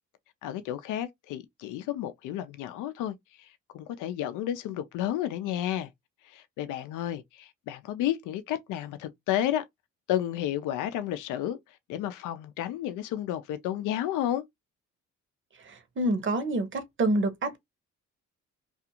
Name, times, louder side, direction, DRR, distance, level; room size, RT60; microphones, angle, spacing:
voice 1, 0.4-3.5 3.7-5.9 6.2-9.6 10.1-11.6 11.9-14.4, left 12 dB, 90° left, 0.5 m, -31 dB
voice 2, 15.6-17.6, right 2 dB, 40° right, 0.8 m, -27 dB
2.4 x 2.4 x 2.7 m
cardioid pair, 90°, 30 cm